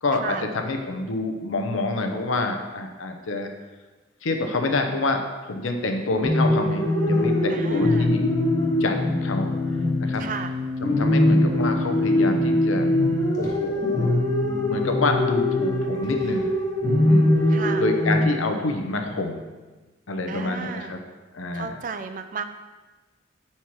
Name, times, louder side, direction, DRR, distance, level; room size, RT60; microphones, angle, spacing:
voice 1, 0.0-3.5 4.2-8.3 8.8-9.5 10.0-10.2 10.8-12.9 13.4-14.1 14.4-16.5 17.0-17.3 17.8-19.5 20.1-21.0 21.3-21.7, left 2 dB, 85° left, 5 dB, 0.7 m, -27 dB
sound 1, 6.2-18.2, left 1 dB, 15° left, 1.0 m, -22 dB
voice 2, 7.5-8.1 10.2-10.5 17.5-17.9 20.3-20.9 21.5-22.4, right 5 dB, 40° right, 9 dB, 0.3 m, -33 dB
4.6 x 4.4 x 5.8 m, 1.2 s
head